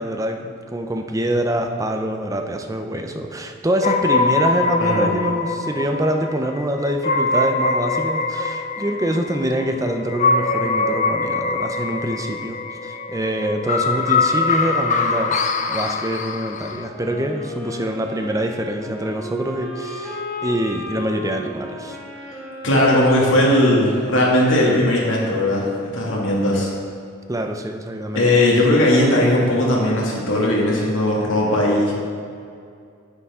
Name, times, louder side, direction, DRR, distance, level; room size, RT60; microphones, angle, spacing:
voice 1, 0.0-22.0 27.3-28.3, right 1 dB, 15° right, 5 dB, 0.6 m, -25 dB
sound 1, 3.8-16.9, left 3 dB, 40° left, 0.5 m, -23 dB
sound 2, 16.8-24.7, left 1 dB, ahead, 1.9 m, -34 dB
voice 2, 22.6-26.7 28.1-32.0, left 1 dB, 75° left, -4 dB, 2.2 m, -18 dB
9.6 x 8.4 x 3.7 m, 2.4 s
head